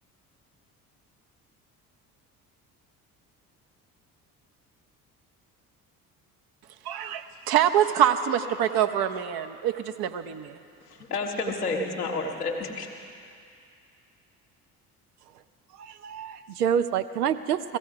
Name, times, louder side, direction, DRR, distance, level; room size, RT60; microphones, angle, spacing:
voice 1, 6.8-10.6, right 10 dB, 50° right, 8 dB, 0.9 m, -25 dB
voice 2, 10.8-12.9, left 3 dB, 90° left, 0 dB, 1.3 m, -30 dB
voice 3, 15.7-17.8, right 8 dB, 85° right, 11 dB, 0.6 m, -27 dB
17.0 x 15.0 x 4.8 m, 2.4 s
figure-of-eight pair, 55°, 45 cm